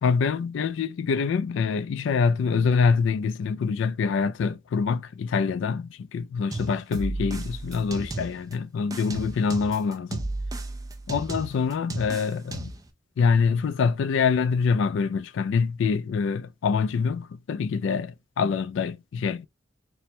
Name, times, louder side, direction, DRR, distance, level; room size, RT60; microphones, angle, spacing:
voice 1, 0.0-10.3 11.1-12.7 13.2-19.5, left 5 dB, 70° left, 0.3 m, -25 dB
sound 1, 6.5-8.5 8.9-12.9, right 2 dB, 20° right, 0.4 m, -34 dB
4.2 x 2.1 x 4.3 m
head